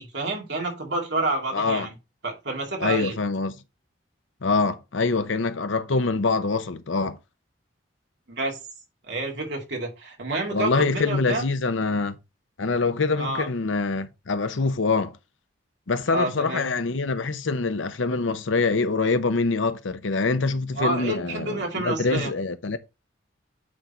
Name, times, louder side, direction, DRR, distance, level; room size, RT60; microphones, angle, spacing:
voice 1, 0.0-1.9 2.2-3.1 8.3-8.6 9.1-11.5 13.2-13.5 16.1-16.7 20.7-22.3, right 2 dB, 65° right, 2.3 m, -29 dB
voice 2, 1.5-1.9 2.8-3.5 4.4-7.2 10.5-12.2 12.6-15.2 15.9-22.8, left 3 dB, 85° left, 0.8 m, -25 dB
8.7 x 3.9 x 4.3 m
head